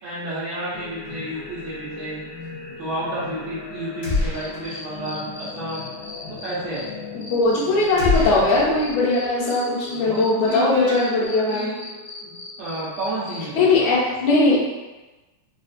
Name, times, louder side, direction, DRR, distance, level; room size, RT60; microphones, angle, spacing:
voice 1, 0.0-2.2 2.8-5.9 6.3-7.0 9.9-11.1 11.5-11.8 12.2-12.3 12.6-13.9, right 1 dB, 75° right, -10 dB, 1.6 m, -31 dB
sound 1, 0.7-13.4, left 5 dB, 85° left, 2.2 m, -39 dB
sound 2, 4.0-4.9 5.2-5.3 8.0-9.3, left 2 dB, 50° left, 1.2 m, -26 dB
Cricket, 4.1-6.9 7.2-10.6 10.9-13.4, left 3 dB, 45° right, 0.8 m, -39 dB
voice 2, 7.3-11.7 13.5-14.6, left 3 dB, 70° left, -7 dB, 1.9 m, -19 dB
4.9 x 2.3 x 2.4 m, 1.1 s
omnidirectional pair, 3.7 m